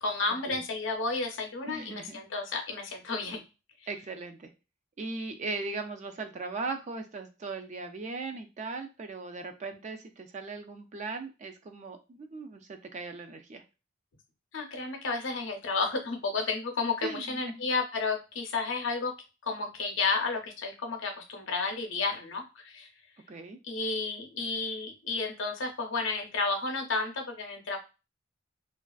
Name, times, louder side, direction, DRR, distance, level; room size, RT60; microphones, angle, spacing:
voice 1, 0.0-3.4 14.5-19.1 19.4-22.9 23.6-27.8, left 3 dB, 65° left, 3 dB, 0.6 m, -32 dB
voice 2, 1.7-2.2 3.9-4.5 5.0-13.6 17.0-17.6 23.3-23.6, right 3 dB, 35° right, 6 dB, 0.3 m, -38 dB
2.4 x 2.3 x 2.3 m, 0.30 s
head